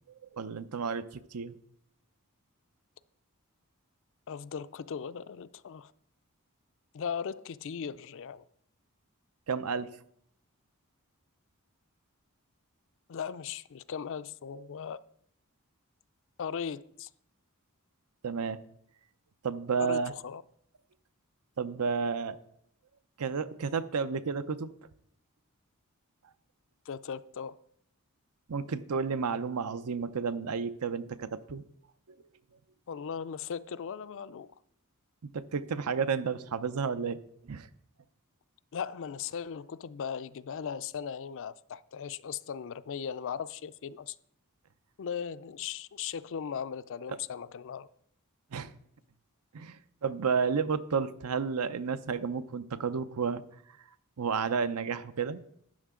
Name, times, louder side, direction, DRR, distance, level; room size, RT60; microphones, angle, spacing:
voice 1, 0.2-1.6 9.5-9.9 18.2-18.6 19.4-20.1 21.6-22.4 23.2-24.7 28.5-31.6 35.3-37.2 37.5-37.7 48.5-48.7 49.5-53.4 54.2-55.4, right 5 dB, 80° right, 0.6 m, -31 dB
voice 2, 4.3-5.9 6.9-8.5 13.1-15.0 16.4-17.1 19.8-20.4 26.9-27.5 32.9-34.5 38.7-44.2 45.0-47.9, left 7 dB, 60° left, 0.4 m, -38 dB
12.5 x 9.0 x 3.7 m
head